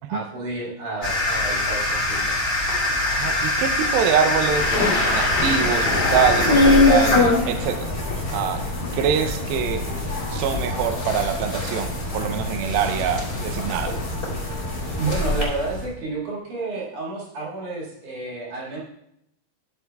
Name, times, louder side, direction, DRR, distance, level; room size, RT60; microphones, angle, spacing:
voice 1, 0.1-2.4 8.6-8.7 14.7-18.8, right 3 dB, 60° right, -5 dB, 3.1 m, -31 dB
sound 1, 1.0-15.9, left 2 dB, 20° left, 3.0 m, -26 dB
voice 2, 3.1-4.7 5.1-7.9 8.3-8.6 8.9-9.8 10.3-14.0, right 7 dB, 80° right, 7 dB, 2.4 m, -24 dB
sound 2, 4.5-15.4, left 2 dB, 80° left, 0.4 m, -24 dB
Thunder, 4.5-10.5 11.5-11.6 12.7-12.9 13.3-13.7, left 3 dB, 60° left, 3.2 m, -30 dB
13.0 x 8.1 x 2.3 m, 0.79 s
omnidirectional pair, 4.6 m